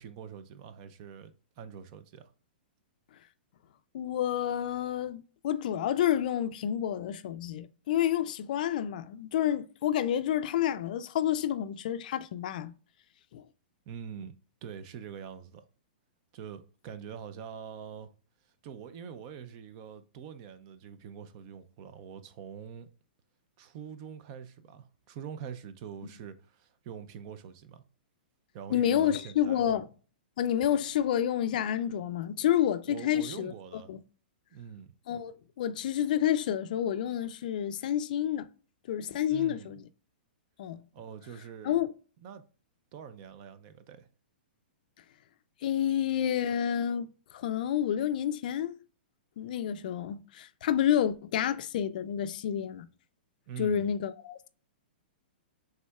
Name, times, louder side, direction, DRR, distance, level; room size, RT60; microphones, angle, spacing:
voice 1, 0.0-2.3 13.9-14.3 14.6-15.6 16.3-18.1 18.6-22.9 23.6-27.8 28.5-29.7 32.9-33.9 34.5-34.9 39.3-39.7 40.9-41.8 42.2-42.4 42.9-44.1 53.5-53.9, right 8 dB, 35° right, 0.5 m, -44 dB
voice 2, 3.9-12.7 13.3-13.4 28.7-29.9 30.4-34.0 35.1-38.5 38.9-39.8 40.6-40.8 41.6-41.9 45.6-48.8 49.4-52.9 53.6-54.5, left 10 dB, 50° left, 0.4 m, -29 dB
5.3 x 3.6 x 2.3 m
hypercardioid pair, 160°, 6 cm